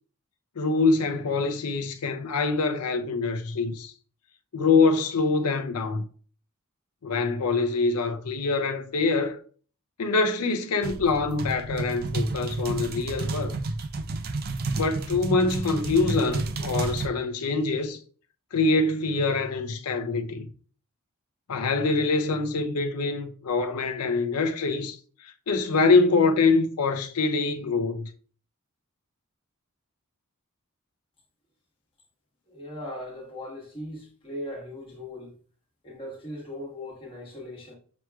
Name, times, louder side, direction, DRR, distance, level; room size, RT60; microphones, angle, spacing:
voice 1, 0.6-3.9 4.5-6.0 7.0-9.4 10.0-13.6 14.7-18.0 18.5-20.5 21.5-25.0 25.2-28.1, left 3 dB, 85° left, 0.6 m, -24 dB
sound 1, 10.8-17.1, right 3 dB, 45° right, 0.4 m, -30 dB
voice 2, 32.5-35.3 35.8-37.7, left 1 dB, 25° left, 1.2 m, -39 dB
6.1 x 3.0 x 2.3 m
head